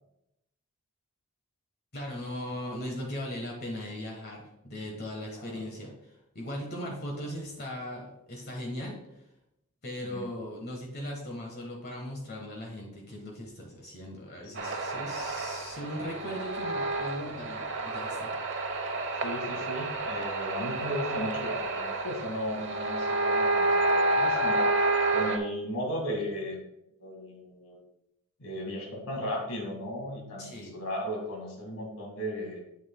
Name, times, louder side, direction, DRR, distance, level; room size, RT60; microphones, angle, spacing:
voice 1, 1.9-9.2 9.8-18.3 30.4-30.8, left 1 dB, 50° left, -1 dB, 1.4 m, -38 dB
sound 1, 14.6-25.4, right 2 dB, 55° right, 1.0 m, -29 dB
voice 2, 19.2-24.9 25.1-26.6 27.0-27.8 28.4-32.6, equal, 85° left, -1 dB, 2.0 m, -36 dB
8.6 x 7.9 x 2.2 m, 0.86 s
head